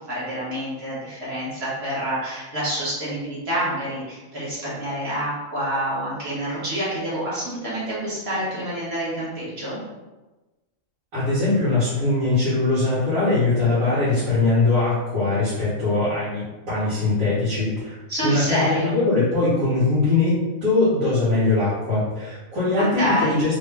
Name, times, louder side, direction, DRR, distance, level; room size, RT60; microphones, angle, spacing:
voice 1, 0.1-9.8 18.1-18.9 22.8-23.4, right 1 dB, 50° right, -9 dB, 1.8 m, -27 dB
voice 2, 11.1-23.6, left 3 dB, 80° right, -14 dB, 2.0 m, -21 dB
3.6 x 2.8 x 3.5 m, 1.1 s
omnidirectional pair, 1.4 m